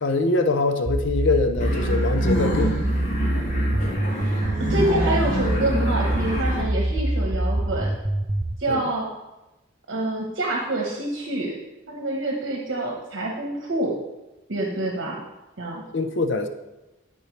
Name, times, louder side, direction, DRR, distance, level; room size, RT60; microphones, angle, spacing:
voice 1, 0.0-2.8 8.7-8.8 15.9-16.5, left 3 dB, 70° left, 7 dB, 0.7 m, -23 dB
sound 1, 0.9-8.5, right 1 dB, 20° right, 0.4 m, -24 dB
sound 2, 1.6-6.6, equal, 40° left, 1.6 m, -27 dB
voice 2, 4.7-7.9 8.6-9.1 9.9-11.5 11.9-13.9 14.5-15.2 15.6-15.8, right 1 dB, 75° right, -1 dB, 1.1 m, -26 dB
12.5 x 4.5 x 3.2 m, 1.0 s
head